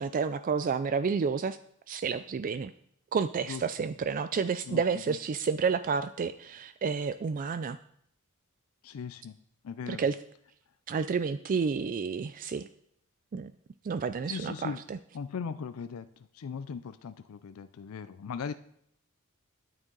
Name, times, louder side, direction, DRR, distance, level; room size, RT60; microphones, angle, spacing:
voice 1, 0.0-1.6 1.9-2.7 3.1-7.8 9.9-10.2 10.9-12.7 13.3-13.5 13.8-15.0, right 5 dB, 40° right, 12 dB, 0.3 m, -30 dB
voice 2, 8.8-9.4 9.6-10.1 14.3-14.8 15.1-16.1 16.3-18.5, left 6 dB, 80° left, 12 dB, 0.4 m, -38 dB
13.0 x 8.9 x 3.9 m, 0.71 s
head